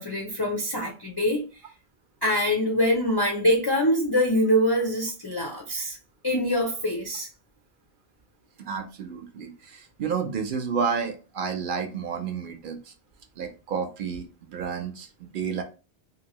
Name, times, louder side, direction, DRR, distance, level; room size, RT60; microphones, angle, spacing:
voice 1, 0.0-1.4 2.2-6.0 6.2-7.3, equal, 35° left, 0.4 m, -24 dB
voice 2, 8.6-12.9 13.4-15.6, right 6 dB, 60° right, 0.6 m, -31 dB
2.8 x 2.6 x 2.9 m
omnidirectional pair, 1.1 m